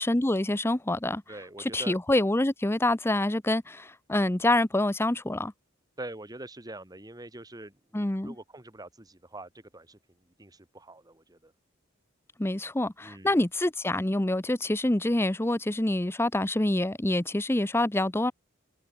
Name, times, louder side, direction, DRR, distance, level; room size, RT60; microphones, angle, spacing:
voice 1, 0.0-1.2 1.6-5.5 7.9-8.4 12.4-18.3, left 1 dB, 10° left, 0.7 m, -26 dB
voice 2, 1.3-2.0 6.0-10.0 10.4-11.5 13.0-13.3, right 2 dB, 20° right, 2.2 m, -44 dB
head